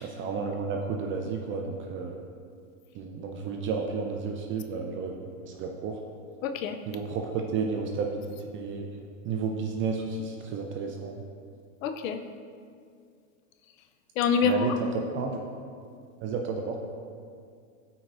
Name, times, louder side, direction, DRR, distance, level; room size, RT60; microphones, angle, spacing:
voice 1, 0.0-2.2 2.9-5.2 5.5-6.0 6.9-11.2 14.4-15.4 16.2-16.8, right 5 dB, 30° right, 2 dB, 0.5 m, -32 dB
voice 2, 6.4-6.8 11.8-12.2 14.2-14.8, left 6 dB, 70° left, 7 dB, 0.7 m, -26 dB
13.0 x 4.7 x 2.6 m, 2.3 s
hypercardioid pair, 125°, 43 cm